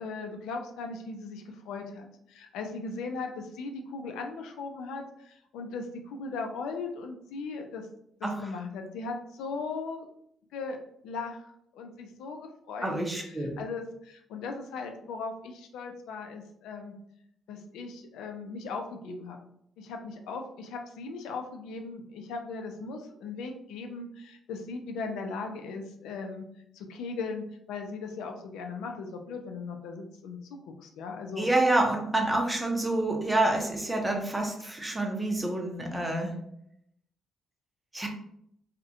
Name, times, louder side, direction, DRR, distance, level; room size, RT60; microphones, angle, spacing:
voice 1, 0.0-7.9 8.2-10.1 10.5-10.8 11.0-11.5 11.7-16.9 17.5-19.4 19.8-26.5 26.7-31.5, left 4 dB, 90° left, 4 dB, 0.3 m, -38 dB
voice 2, 12.8-13.6 31.4-36.3 37.9-38.1, right 2 dB, 10° right, 1 dB, 0.5 m, -27 dB
2.3 x 2.1 x 2.7 m, 0.73 s
cardioid pair, 90°, 0 cm